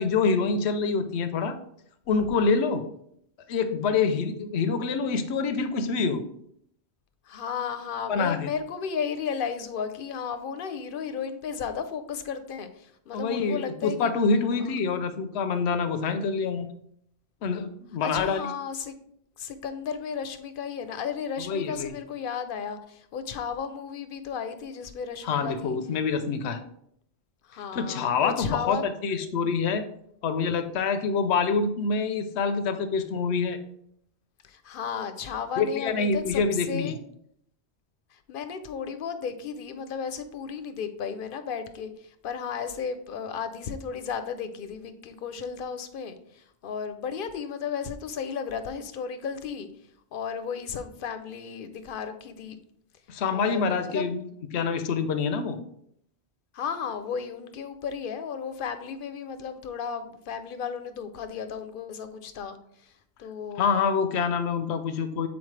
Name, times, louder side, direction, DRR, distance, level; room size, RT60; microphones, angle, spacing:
voice 1, 0.0-1.6 2.1-2.9 3.5-6.2 8.1-8.5 13.1-16.7 17.4-18.5 21.4-21.9 25.2-26.6 27.7-29.9 30.2-33.6 35.6-37.0 53.1-54.2 54.5-55.6 63.6-65.3, left 5 dB, 85° left, 9 dB, 0.9 m, -26 dB
voice 2, 7.3-14.1 14.6-14.7 18.0-19.0 19.4-25.8 27.4-28.8 34.4-37.0 38.1-49.7 50.1-52.6 53.3-54.0 56.5-62.6 62.8-62.9 63.2-63.7, left 6 dB, 60° left, 10 dB, 0.7 m, -34 dB
7.1 x 4.2 x 3.2 m, 0.72 s
omnidirectional pair, 1.1 m